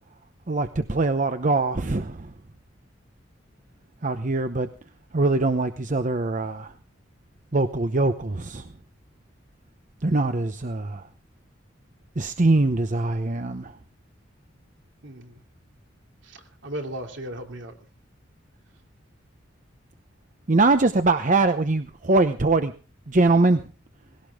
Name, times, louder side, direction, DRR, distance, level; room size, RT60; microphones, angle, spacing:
voice 1, 0.5-2.3 4.0-4.7 5.1-6.7 7.5-8.7 10.0-11.1 12.2-13.7 20.5-22.7 23.1-23.7, right 2 dB, 40° right, 9 dB, 0.8 m, -22 dB
voice 2, 15.0-15.4 16.2-17.9, right 1 dB, 70° right, 3 dB, 2.7 m, -36 dB
19.5 x 17.0 x 3.7 m, 0.38 s
head